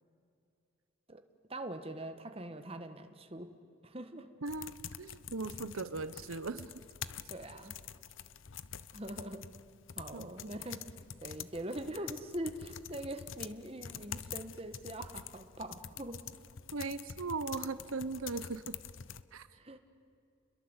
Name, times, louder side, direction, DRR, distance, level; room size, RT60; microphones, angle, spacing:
voice 1, 1.5-3.5 3.8-4.3 7.3-7.8 8.9-9.5 9.9-16.2 19.5-19.8, right 1 dB, 25° right, 7 dB, 1.5 m, -43 dB
voice 2, 4.4-6.7 10.1-10.5 16.7-18.8 19.3-19.5, right 3 dB, 80° right, 13 dB, 0.9 m, -39 dB
sound 1, 4.5-19.2, left 8 dB, 70° left, 0.8 m, -46 dB
30.0 x 22.0 x 8.2 m, 2.6 s
head